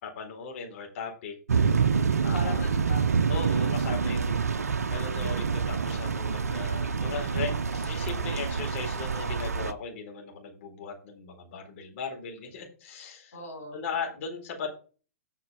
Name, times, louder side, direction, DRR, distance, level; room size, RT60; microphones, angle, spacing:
voice 1, 0.0-1.3 2.2-2.6 3.3-4.4 4.9-13.4 13.7-14.7, left 5 dB, 55° left, 1 dB, 4.1 m, -37 dB
sound 1, 1.5-9.7, right 6 dB, 85° right, 0.8 m, -27 dB
voice 2, 2.3-3.2 3.7-4.0 13.3-13.8, left 2 dB, 80° left, -1 dB, 3.5 m, -40 dB
8.4 x 5.9 x 5.9 m, 0.36 s
hypercardioid pair, 110°, 8 cm